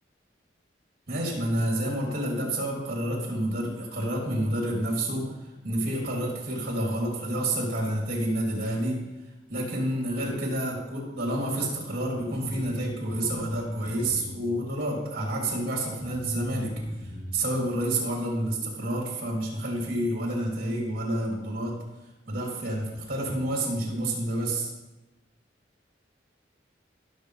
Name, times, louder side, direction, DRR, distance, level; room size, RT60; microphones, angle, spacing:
voice 1, 1.1-5.3 5.6-9.0 9.5-21.8 22.2-24.7, right 1 dB, 55° right, -2 dB, 3.3 m, -29 dB
sound 1, 12.1-14.8 15.5-15.6 16.0-17.3, equal, 20° right, 2.9 m, -37 dB
17.5 x 7.0 x 3.4 m, 1.1 s
head